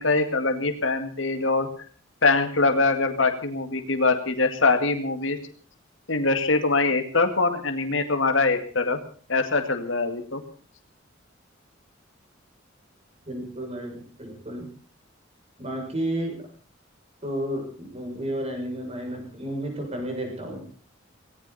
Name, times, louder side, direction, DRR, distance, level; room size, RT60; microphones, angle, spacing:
voice 1, 0.0-1.7 2.2-5.4 6.1-9.0 9.3-10.4, left 3 dB, 75° left, 6 dB, 2.0 m, -23 dB
voice 2, 13.3-14.7 15.6-16.5 17.2-20.6, right 1 dB, 35° right, 2 dB, 7.0 m, -32 dB
18.0 x 18.0 x 4.2 m, 0.42 s
head